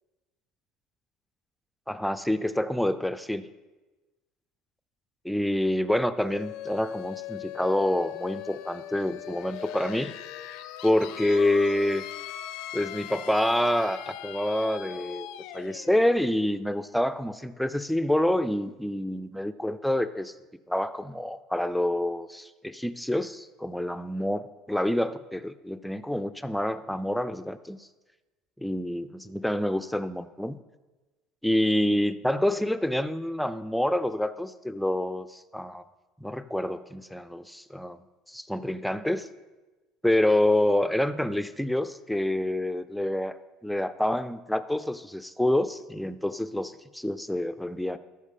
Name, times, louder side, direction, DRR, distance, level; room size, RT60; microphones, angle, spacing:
voice 1, 1.9-3.4 5.2-10.2 10.8-12.1 12.7-15.3 15.5-20.3 20.7-24.4 24.7-27.8 28.6-30.6 31.4-35.8 36.2-38.0 38.3-39.3 40.0-48.0, left 1 dB, ahead, 12 dB, 0.4 m, -27 dB
sound 1, 6.2-17.7, left 12 dB, 75° left, 0.5 m, -40 dB
13.0 x 4.8 x 5.4 m, 1.2 s
cardioid pair, 120°, 0 cm